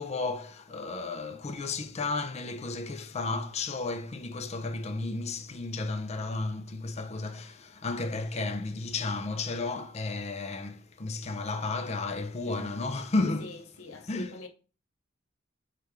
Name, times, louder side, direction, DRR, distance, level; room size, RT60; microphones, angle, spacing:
voice 1, 0.0-13.5 14.1-14.4, left 3 dB, 30° left, 0.5 m, -33 dB
voice 2, 12.5-12.8 13.4-14.5, left 3 dB, 90° left, 0.9 m, -44 dB
3.3 x 3.3 x 4.9 m
head